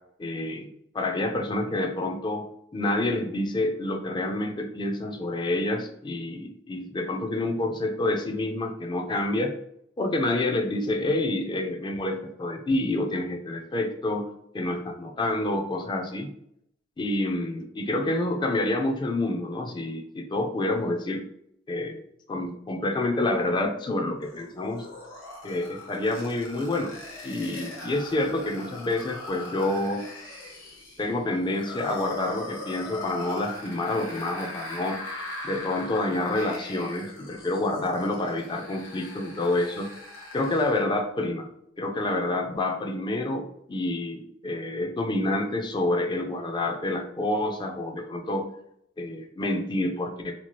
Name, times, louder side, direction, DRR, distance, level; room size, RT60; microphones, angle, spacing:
voice 1, 0.2-2.4 2.7-9.5 10.0-14.3 14.5-16.3 17.0-21.2 21.7-22.0 22.3-24.9 25.4-26.9 27.2-30.1 31.0-35.0 35.4-39.9 40.3-41.5 41.8-48.5 49.0-50.3, left 2 dB, 25° left, 5 dB, 0.3 m, -28 dB
sound 1, 24.2-40.8, left 2 dB, 70° left, 0.8 m, -40 dB
2.8 x 2.3 x 3.0 m, 0.73 s
head